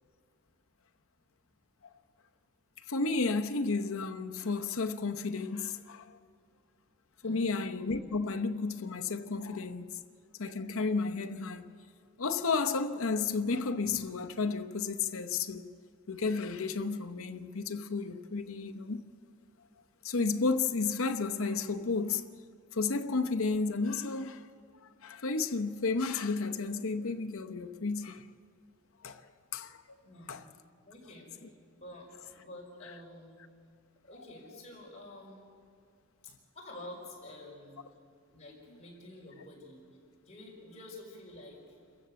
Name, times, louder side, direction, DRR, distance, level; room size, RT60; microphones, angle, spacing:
voice 1, 2.9-6.2 7.2-10.0 10.4-11.7 12.2-15.7 16.1-19.1 20.0-22.3 22.7-24.5 25.0-28.3 29.0-30.0 30.3-30.4, left 4 dB, 80° left, 0.9 m, -32 dB
voice 2, 7.2-7.5 30.0-30.4 30.8-31.4 31.8-33.4 34.0-35.5 36.2-37.8 38.3-39.8 40.3-41.8, left 1 dB, 30° left, 5.3 m, -49 dB
28.0 x 15.0 x 7.0 m
head